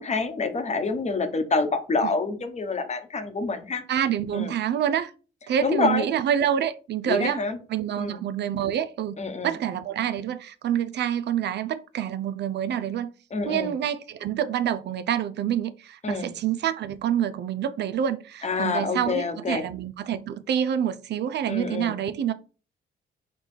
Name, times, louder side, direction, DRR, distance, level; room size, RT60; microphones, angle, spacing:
voice 1, 0.0-3.8 4.3-4.5 5.6-6.1 7.0-7.6 8.0-8.2 9.2-9.5 13.3-13.7 16.0-16.4 18.4-19.7 21.5-21.9, left 4 dB, 35° left, 1.0 m, -27 dB
voice 2, 3.9-5.1 5.5-7.4 7.7-9.2 9.4-13.1 13.5-22.3, right 9 dB, 60° right, 0.4 m, -27 dB
5.2 x 2.3 x 4.4 m
cardioid pair, 90°, 20 cm